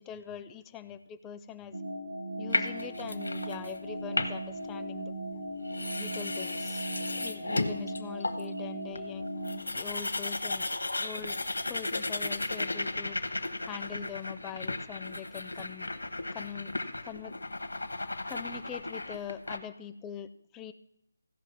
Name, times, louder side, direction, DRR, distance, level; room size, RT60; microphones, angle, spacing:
voice 1, 0.0-1.8 2.4-5.2 6.0-6.8 7.2-9.3 9.8-10.7 11.0-11.4 11.7-13.2 13.6-15.9 16.3-16.7 17.0-17.4 18.3-20.7, left 9 dB, 10° left, 12 dB, 0.4 m, -43 dB
sound 1, 1.7-9.6, right 1 dB, 85° right, 1.8 m, -38 dB
sound 2, 2.5-3.8 4.1-4.6 5.3-5.4 5.7-8.6 9.0-9.1 9.3-19.6, left 2 dB, 80° left, 1.1 m, -35 dB
15.0 x 5.5 x 5.9 m, 0.80 s
figure-of-eight pair, 155°, 0 cm